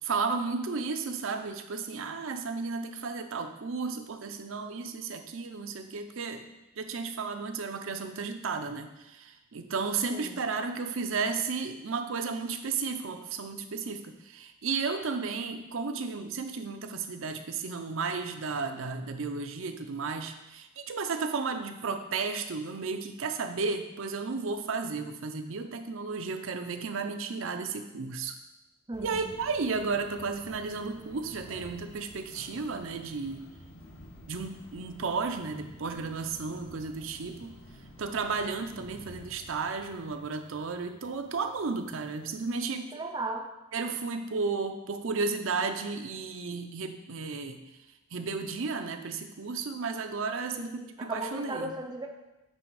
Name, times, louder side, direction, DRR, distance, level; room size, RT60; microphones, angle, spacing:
voice 1, 0.0-6.4 6.8-28.4 29.0-33.4 34.3-37.6 38.0-42.9 43.7-47.6 48.1-51.7, right 4 dB, 70° right, 7 dB, 0.6 m, -33 dB
voice 2, 10.1-10.4 28.9-29.2 42.9-43.5 50.5-52.1, right 2 dB, 20° right, 2 dB, 0.4 m, -36 dB
sound 1, 28.9-42.6, equal, 60° left, 1.3 m, -51 dB
8.3 x 3.4 x 4.8 m, 0.97 s
head